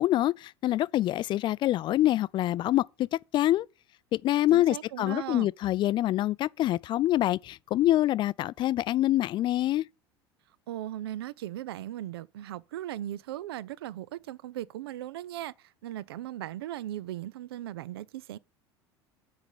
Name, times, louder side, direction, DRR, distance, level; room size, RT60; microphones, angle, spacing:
voice 1, 0.0-3.7 4.1-9.8, left 14 dB, 35° left, 0.4 m, -26 dB
voice 2, 4.5-5.5 10.7-18.4, right 13 dB, 65° right, 0.4 m, -38 dB
8.0 x 5.0 x 7.0 m
figure-of-eight pair, 70°, 13 cm